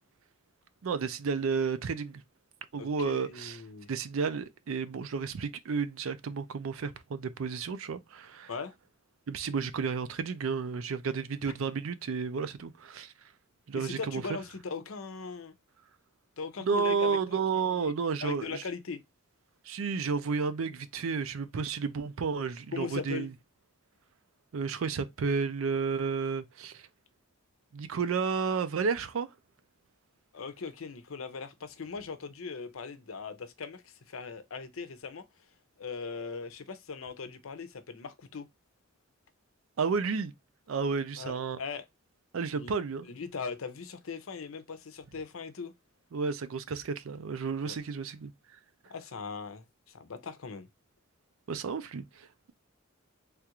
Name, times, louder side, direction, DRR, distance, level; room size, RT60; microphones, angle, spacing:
voice 1, 0.8-2.2 2.7-3.6 3.9-8.5 9.3-13.1 13.7-14.4 16.6-18.6 19.6-23.3 24.5-26.9 27.7-29.3 39.8-40.3 40.7-41.6 42.3-43.1 46.1-48.3 51.5-52.5, right 5 dB, 75° right, 0.5 m, -32 dB
voice 2, 2.7-3.9 8.5-8.7 13.7-15.5 16.4-17.4 17.7-17.9 18.2-19.0 22.7-23.3 30.3-35.2 35.8-38.5 41.2-41.9 42.5-42.7 43.0-45.7 47.6-47.8 48.9-50.7, left 5 dB, 80° left, 0.6 m, -40 dB
3.4 x 2.4 x 2.9 m
head